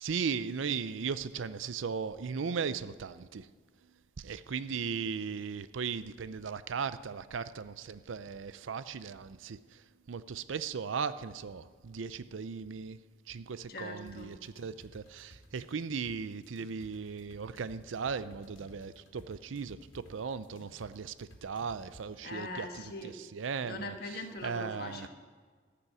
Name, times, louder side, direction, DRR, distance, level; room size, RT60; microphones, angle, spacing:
voice 1, 0.0-3.5 4.2-9.6 10.1-13.0 13.3-19.8 20.1-22.7 23.0-23.9 24.4-25.1, right 6 dB, 80° right, 14 dB, 0.5 m, -37 dB
voice 2, 13.7-14.3 22.2-23.2 23.6-25.1, left 2 dB, 50° left, 4 dB, 1.6 m, -41 dB
sound 1, 14.1-22.1, equal, 90° left, 2.2 m, -56 dB
14.5 x 6.9 x 9.1 m, 1.5 s
head